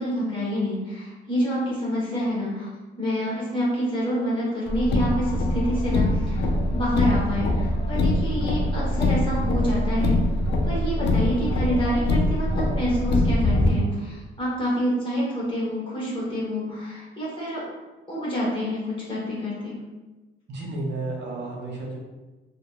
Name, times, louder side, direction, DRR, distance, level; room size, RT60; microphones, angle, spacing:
voice 1, 0.0-2.7 3.0-10.2 10.6-17.6 18.1-19.7, equal, 25° left, -7 dB, 1.1 m, -27 dB
Car, 4.7-13.7, left 1 dB, 60° left, 0.4 m, -23 dB
voice 2, 20.5-22.0, right 2 dB, 60° right, -2 dB, 0.6 m, -32 dB
2.7 x 2.1 x 2.3 m, 1.2 s
cardioid pair, 90°, 20 cm